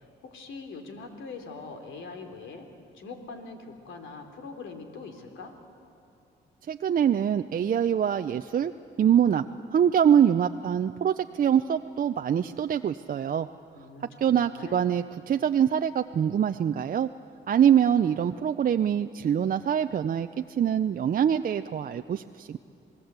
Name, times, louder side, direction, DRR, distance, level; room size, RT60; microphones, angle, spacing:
voice 1, 0.0-2.7 2.9-5.5 13.7-14.8, left 4 dB, 75° left, 5 dB, 3.2 m, -42 dB
voice 2, 6.7-8.7 9.0-9.5 9.7-13.5 14.2-17.1 17.5-22.6, right 9 dB, 45° right, 8 dB, 0.6 m, -24 dB
28.0 x 19.5 x 8.2 m, 2.7 s
cardioid pair, 90°, 20 cm